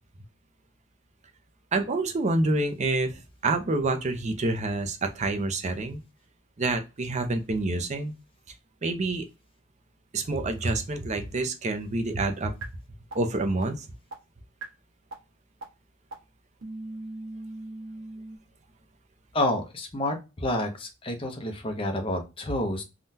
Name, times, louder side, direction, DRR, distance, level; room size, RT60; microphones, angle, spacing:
voice 1, 1.7-6.0 6.6-8.1 8.8-9.3 10.1-12.5 13.1-13.9, right 2 dB, 35° right, 6 dB, 0.5 m, -27 dB
sound 1, 12.6-12.7 13.1-13.2 13.6-13.7 14.1-14.2 14.6-14.7 15.1-15.2 15.6-15.7 16.1-16.2 16.6-18.4, right 2 dB, 85° right, 1.2 m, -38 dB
voice 2, 19.3-22.8, left 1 dB, 25° left, 3 dB, 0.7 m, -29 dB
3.6 x 2.2 x 2.7 m, 0.27 s
head